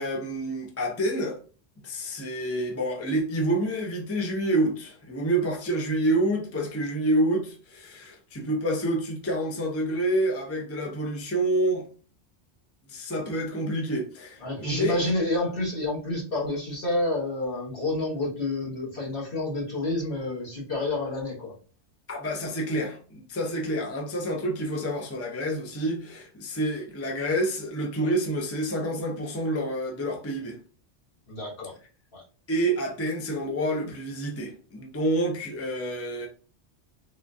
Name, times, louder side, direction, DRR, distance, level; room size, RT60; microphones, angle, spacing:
voice 1, 0.0-1.4 1.8-11.8 12.9-15.0 22.1-30.6 32.5-36.3, right 1 dB, 20° left, 0.4 m, -28 dB
voice 2, 14.4-21.5 31.3-31.7 32.1-32.2, left 2 dB, 55° left, 1.4 m, -29 dB
3.6 x 2.3 x 2.5 m
omnidirectional pair, 1.2 m